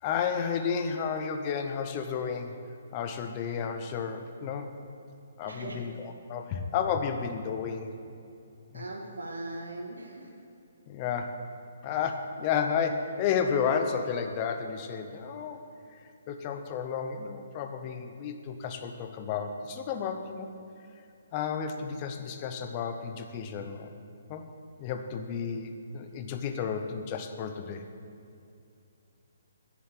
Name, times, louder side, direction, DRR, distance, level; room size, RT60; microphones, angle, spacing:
voice 1, 0.0-2.6 2.9-4.7 5.4-7.9 8.7-8.8 10.9-11.4 11.8-15.6 15.9-16.0 16.3-20.5 21.3-23.9 24.3-24.5 24.8-27.8, left 6 dB, 30° left, 6 dB, 0.8 m, -32 dB
voice 2, 5.5-5.8 8.7-10.3, right 2 dB, 90° right, 0 dB, 2.1 m, -39 dB
8.7 x 7.2 x 7.9 m, 2.5 s
hypercardioid pair, 150°, 0 cm